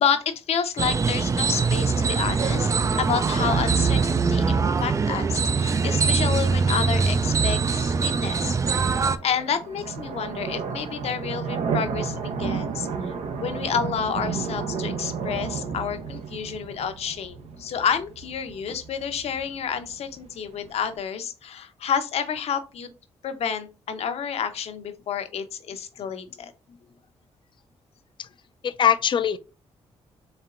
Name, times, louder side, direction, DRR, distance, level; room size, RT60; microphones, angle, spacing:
voice 1, 0.0-2.7 3.0-8.8 9.2-13.1 13.4-22.9 23.2-26.5, left 7 dB, 70° left, 0.8 m, -29 dB
sound 1, 0.8-9.2, right 5 dB, 30° right, 0.4 m, -23 dB
sound 2, 7.8-21.0, right 6 dB, 75° right, 0.8 m, -33 dB
voice 2, 28.6-29.4, left 9 dB, 45° left, 0.4 m, -22 dB
4.4 x 3.3 x 2.5 m
cardioid pair, 95°, 11 cm